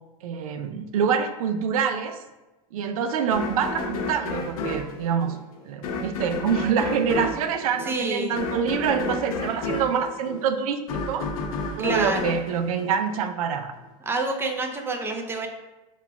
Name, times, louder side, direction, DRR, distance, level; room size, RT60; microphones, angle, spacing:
voice 1, 0.2-2.2 2.7-5.4 5.6-10.8 11.1-11.3 11.8-13.7, right 6 dB, 85° right, 8 dB, 0.5 m, -26 dB
sound 1, 3.3-13.5, left 2 dB, 90° left, 0.6 m, -31 dB
voice 2, 7.8-8.3 11.8-12.4 14.1-15.5, right 2 dB, 15° right, 3 dB, 0.5 m, -28 dB
3.8 x 2.4 x 4.5 m, 1.1 s
supercardioid pair, 120°, 18 cm